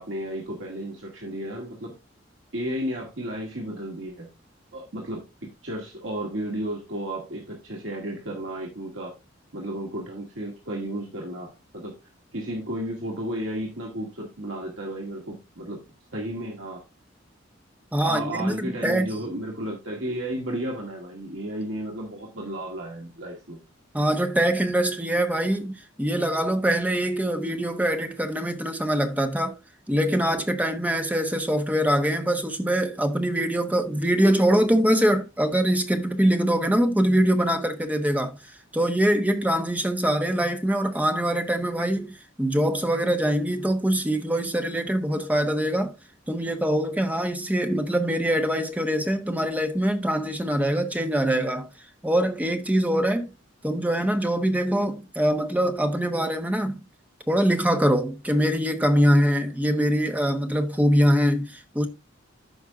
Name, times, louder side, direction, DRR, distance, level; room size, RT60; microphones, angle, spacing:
voice 1, 0.0-1.9 2.5-4.3 4.7-9.1 9.5-11.9 12.3-15.8 16.1-16.8 18.0-23.6, right 1 dB, 65° right, 1.9 m, -33 dB
voice 2, 17.9-19.1 23.9-29.5 29.9-38.4 38.7-45.9 46.3-51.7 52.0-53.3 53.6-56.8 57.3-61.9, equal, 10° right, 1.0 m, -23 dB
14.5 x 5.3 x 2.4 m
head